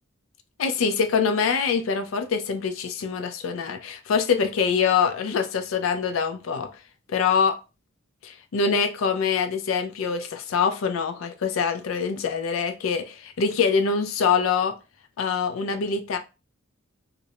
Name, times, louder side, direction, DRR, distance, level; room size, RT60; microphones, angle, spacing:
voice 1, 0.6-6.7 7.1-7.6 8.2-14.7 15.2-16.2, left 6 dB, 80° left, 0.4 m, -24 dB
2.4 x 2.0 x 2.8 m
head